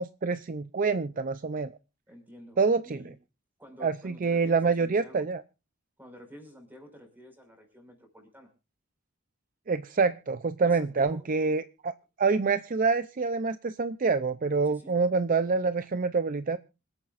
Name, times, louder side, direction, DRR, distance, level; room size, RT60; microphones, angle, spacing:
voice 1, 0.0-1.7 2.6-3.0 3.8-5.4 9.7-11.9 12.2-16.6, right 4 dB, 45° right, 12 dB, 0.5 m, -26 dB
voice 2, 2.1-2.6 2.8-3.1 3.6-5.3 6.0-8.5 10.6-11.3 14.6-14.9, equal, 10° right, 3 dB, 5.4 m, -50 dB
26.5 x 8.9 x 2.5 m, 0.30 s
head